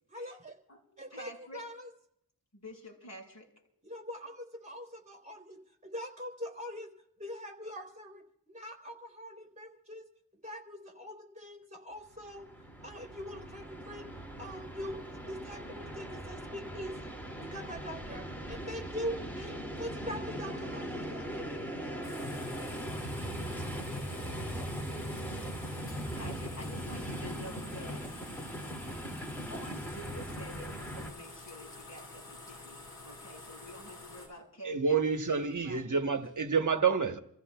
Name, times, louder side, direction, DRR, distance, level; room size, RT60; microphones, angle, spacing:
voice 1, 0.1-0.6 1.0-1.9 3.8-6.9 7.2-10.1 10.4-12.5 12.8-14.1 14.4-17.1 17.4-21.4, equal, 20° right, 3.5 m, -43 dB
voice 2, 0.7-1.6 2.5-3.5 26.1-28.2 28.6-28.7 29.5-36.0, equal, 45° left, 5.6 m, -49 dB
Train, 12.1-31.1, equal, 5° left, 2.6 m, -40 dB
sound 1, 22.0-34.3, left 2 dB, 75° left, 8.0 m, -48 dB
voice 3, 34.7-37.2, right 5 dB, 55° right, 1.2 m, -28 dB
29.5 x 15.0 x 2.3 m
wide cardioid pair, 60°, 37 cm